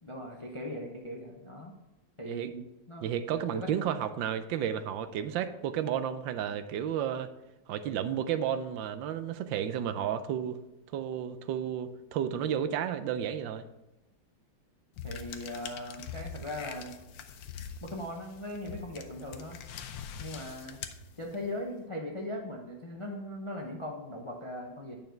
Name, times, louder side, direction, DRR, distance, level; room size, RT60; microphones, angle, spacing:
voice 1, 0.0-1.7 2.2-3.1 3.5-3.7 15.0-17.0 17.8-19.6 20.2-20.8 21.2-25.0, left 1 dB, 40° left, 0 dB, 0.4 m, -39 dB
voice 2, 3.0-7.3 7.7-10.6 10.9-13.7, right 9 dB, 90° right, 10 dB, 1.3 m, -32 dB
sound 1, 15.0-21.6, left 7 dB, 85° left, 1.4 m, -44 dB
9.1 x 5.4 x 4.5 m, 0.98 s
omnidirectional pair, 2.0 m